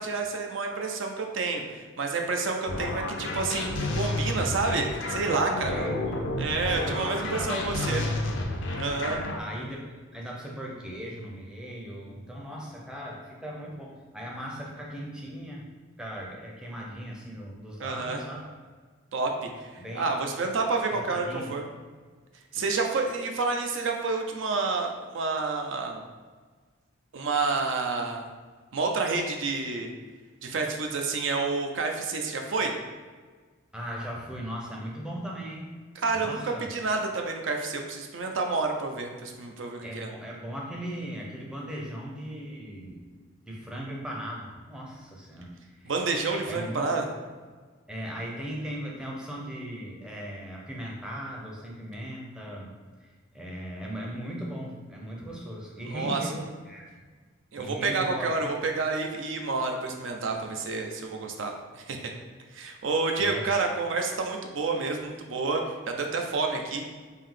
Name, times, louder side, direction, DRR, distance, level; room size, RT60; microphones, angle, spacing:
voice 1, 0.0-5.8 6.4-8.0 8.8-9.2 17.8-18.2 19.1-21.6 22.5-26.0 27.1-28.3 28.7-29.9 30.4-32.7 36.0-40.1 45.8-47.1 55.9-56.2 57.5-62.0 62.5-66.9, right 3 dB, 70° right, 3 dB, 0.5 m, -29 dB
sound 1, 2.7-9.4, left 2 dB, 65° left, 0.5 m, -31 dB
voice 2, 5.7-6.3 6.7-8.1 9.4-9.8 10.1-15.6 16.0-18.5 19.8-20.1 20.9-21.5 22.5-22.6 27.2-27.3 33.7-35.7 36.1-36.7 39.8-45.9 46.5-46.8 47.9-52.7 53.0-56.8 57.6-58.5 63.2-63.5, equal, 5° right, -3 dB, 0.5 m, -38 dB
3.5 x 2.7 x 3.7 m, 1.5 s
head